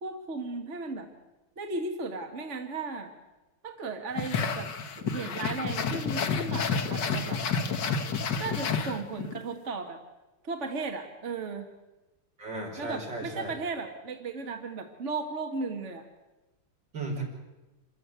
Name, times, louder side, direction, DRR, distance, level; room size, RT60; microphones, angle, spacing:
voice 1, 0.0-1.1 1.6-3.1 3.6-7.4 8.3-10.0 10.4-11.7 12.8-16.0, right 3 dB, 40° right, 5 dB, 1.5 m, -36 dB
sound 1, 4.2-9.4, left 5 dB, 60° left, 2.0 m, -30 dB
voice 2, 12.4-13.5 16.9-17.2, right 2 dB, 55° right, -1 dB, 5.7 m, -35 dB
27.0 x 14.0 x 9.3 m, 1.1 s
omnidirectional pair, 2.3 m